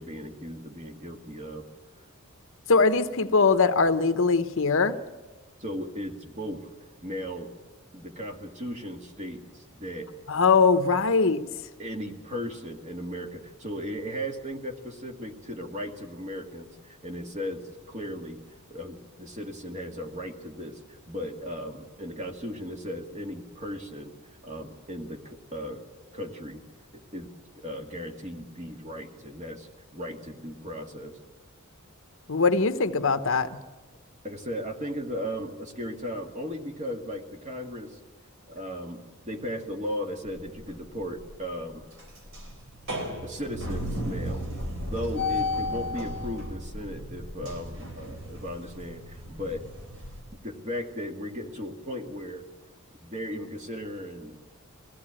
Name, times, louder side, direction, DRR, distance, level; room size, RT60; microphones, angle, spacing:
voice 1, 0.0-1.7 5.6-6.7 7.0-7.5 7.9-10.1 11.8-18.4 18.7-25.8 26.1-26.6 26.9-31.2 34.2-38.0 38.5-41.8 43.2-44.4 44.9-49.6 50.4-52.5 53.0-54.5, equal, 35° right, 4 dB, 2.0 m, -36 dB
voice 2, 2.7-5.0 10.3-11.4 32.3-33.6, left 4 dB, 65° left, 10 dB, 0.9 m, -21 dB
sound 1, 40.3-40.8 41.2-41.4 41.7-50.2, left 1 dB, 65° right, 3.7 m, -34 dB
22.0 x 15.5 x 8.8 m, 1.2 s
head